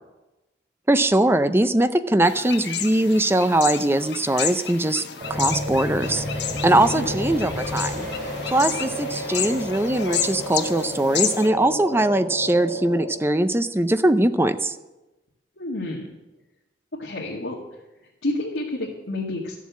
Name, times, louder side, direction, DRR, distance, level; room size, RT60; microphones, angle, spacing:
voice 1, 0.9-5.0 5.3-6.2 6.6-8.1 8.5-14.7, right 1 dB, 15° right, 11 dB, 0.5 m, -21 dB
sound 1, 2.2-11.5, left 9 dB, 65° left, 1.1 m, -31 dB
sound 2, 5.2-13.1, equal, 45° right, 4.9 m, -31 dB
voice 2, 6.7-7.1 15.6-16.1 17.0-17.6 18.2-19.6, left 2 dB, 80° left, -5 dB, 2.1 m, -29 dB
14.0 x 7.3 x 8.5 m, 1.0 s
head